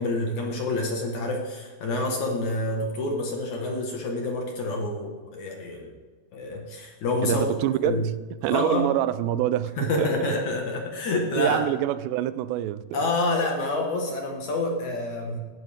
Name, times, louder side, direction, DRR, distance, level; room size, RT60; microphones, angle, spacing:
voice 1, 0.0-5.9 6.3-7.5 7.8-8.0 8.5-8.9 9.8-11.6 12.9-15.4, left 2 dB, 55° left, 2.4 m, -27 dB
voice 2, 7.2-8.1 8.4-10.5 11.4-13.0, right 13 dB, 90° right, 2.8 m, -26 dB
18.5 x 12.5 x 3.6 m
omnidirectional pair, 4.9 m